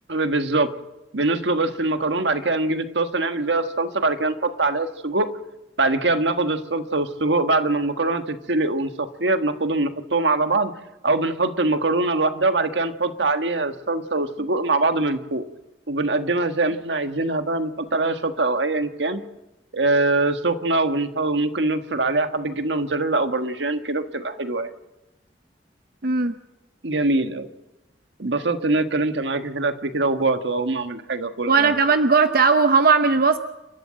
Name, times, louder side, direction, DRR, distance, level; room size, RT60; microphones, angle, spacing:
voice 1, 0.1-0.7 1.1-5.3 5.8-10.7 11.0-15.4 15.9-19.2 19.7-24.7 26.8-27.5 28.2-31.7, right 2 dB, 85° right, 8 dB, 1.6 m, -23 dB
voice 2, 26.0-26.3 31.5-33.4, right 4 dB, 55° right, 9 dB, 0.9 m, -17 dB
29.5 x 13.0 x 7.6 m, 1.0 s
head